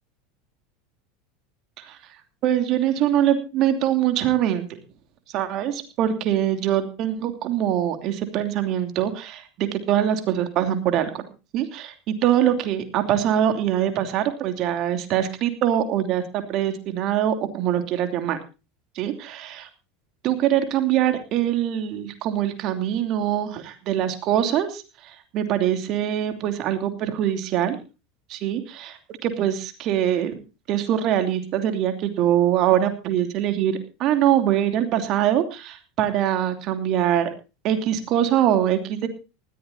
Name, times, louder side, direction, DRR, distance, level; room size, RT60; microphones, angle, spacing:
voice 1, 2.4-4.8 5.3-11.2 11.5-18.4 18.9-19.7 20.2-27.8 28.3-30.3 30.7-37.3 37.6-39.1, right 11 dB, 50° right, 7 dB, 2.9 m, -23 dB
19.5 x 14.5 x 2.8 m, 0.31 s
hypercardioid pair, 85°, 0 cm